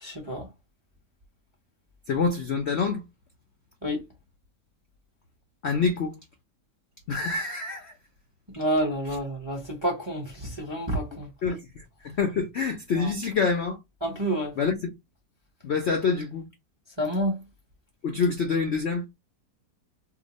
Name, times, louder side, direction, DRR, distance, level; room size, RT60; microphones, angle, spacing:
voice 1, 0.0-0.5 3.8-4.0 8.6-11.3 13.0-13.1 14.0-14.5 17.0-17.4, equal, 25° right, 0.7 m, -28 dB
voice 2, 2.1-3.0 5.6-6.2 7.1-7.9 11.4-13.8 14.6-14.9 15.6-16.5 18.0-19.0, left 5 dB, 60° left, 0.7 m, -26 dB
2.8 x 2.2 x 4.0 m
omnidirectional pair, 1.8 m